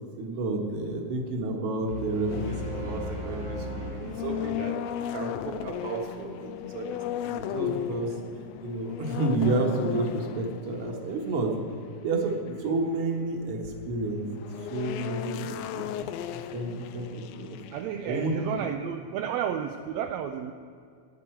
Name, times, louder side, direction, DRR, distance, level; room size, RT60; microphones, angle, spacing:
voice 1, 0.2-8.1 8.6-11.6 12.0-14.3 14.7-16.0 16.5-17.6 18.1-18.3 18.6-18.7, right 2 dB, 55° right, 2 dB, 2.1 m, -31 dB
sound 1, 1.9-5.2, right 1 dB, 15° right, 0.9 m, -38 dB
sound 2, 2.0-6.6, left 3 dB, 55° left, 2.0 m, -46 dB
sound 3, 2.3-18.7, left 11 dB, 85° left, 1.5 m, -37 dB
voice 2, 17.7-20.5, right 9 dB, 80° right, 5 dB, 1.7 m, -32 dB
16.0 x 9.9 x 4.5 m, 2.4 s
omnidirectional pair, 3.4 m